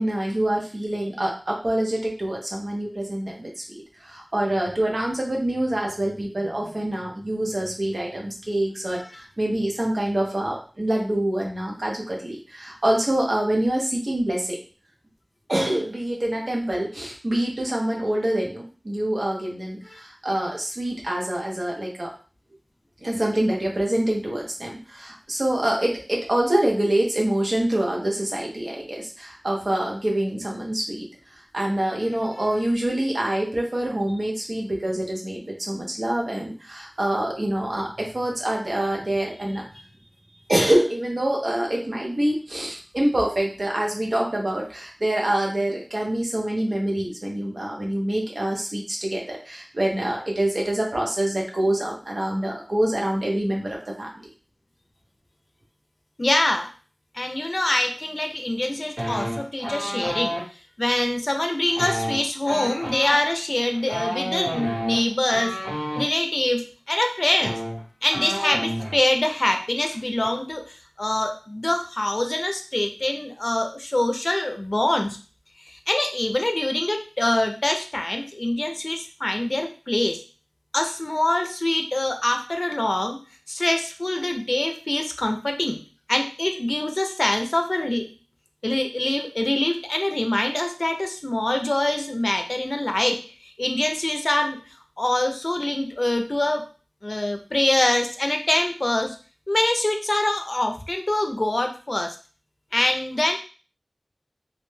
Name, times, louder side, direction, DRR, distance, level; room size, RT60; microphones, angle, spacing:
voice 1, 0.0-14.6 15.5-22.1 23.0-31.1 31.3-39.6 40.5-54.1, right 1 dB, 75° right, -1 dB, 0.7 m, -25 dB
voice 2, 56.2-56.7 57.1-60.4 60.8-65.6 66.0-67.6 68.0-75.2 75.6-80.2 80.7-83.2 83.5-85.8 86.1-88.1 88.6-96.7 97.0-99.2 99.5-102.2 102.7-103.4, left 1 dB, 60° left, 5 dB, 0.4 m, -24 dB
sound 1, 59.0-60.4 61.7-66.0 67.0-67.1 67.3-69.0 69.3-69.5 69.8-70.3, equal, 50° right, 1.3 m, -30 dB
2.5 x 2.1 x 3.1 m, 0.37 s
wide cardioid pair, 40°, 0 cm